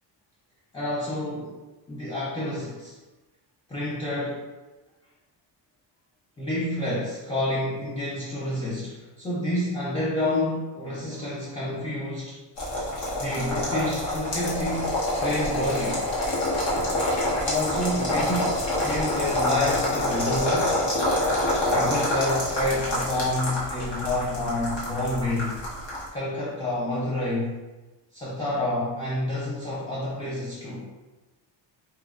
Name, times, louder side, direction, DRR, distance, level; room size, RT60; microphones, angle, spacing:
voice 1, 0.7-1.5 1.9-3.0 3.7-4.5 6.4-12.4 13.2-16.0 17.4-20.8 21.7-25.6 26.1-27.6 28.1-30.9, left 1 dB, 15° left, -7 dB, 0.3 m, -29 dB
sound 1, 12.6-26.1, left 1 dB, 85° left, 1.2 m, -26 dB
4.1 x 2.0 x 2.3 m, 1.1 s
wide cardioid pair, 165°, 44 cm